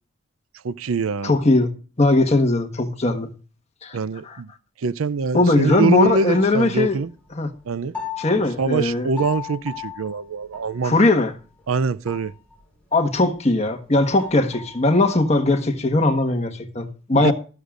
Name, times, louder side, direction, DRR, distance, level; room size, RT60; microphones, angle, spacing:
voice 1, 0.6-1.4 3.9-4.5 4.8-7.1 7.7-7.9 8.3-11.0 11.7-12.3 17.1-17.3, right 4 dB, 80° right, 0.5 m, -24 dB
voice 2, 1.2-1.7 2.0-3.3 3.8-4.0 4.3-4.4 5.3-6.9 7.4-7.5 8.2-9.1 10.8-11.3 12.9-17.3, left 2 dB, 30° left, 1.4 m, -19 dB
sound 1, 5.7-7.3 7.8-11.7 12.0-12.8 13.1-13.3 13.6-13.7 13.9-16.0, left 7 dB, 5° left, 4.8 m, -37 dB
13.0 x 13.0 x 2.5 m
head